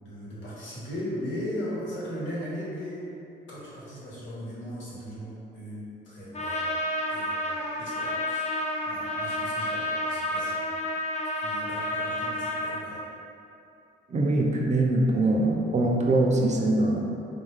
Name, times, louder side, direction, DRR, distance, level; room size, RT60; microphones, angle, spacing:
voice 1, 0.0-3.0 3.5-6.7 7.1-8.5 8.8-11.1 11.4-13.0, equal, 70° left, -8 dB, 1.3 m, -38 dB
Trumpet, 6.3-12.8, left 1 dB, 35° left, 0.5 m, -30 dB
voice 2, 14.1-17.0, right 2 dB, 35° right, 0 dB, 0.4 m, -23 dB
3.5 x 2.4 x 3.3 m, 2.6 s
cardioid pair, 90°, 20 cm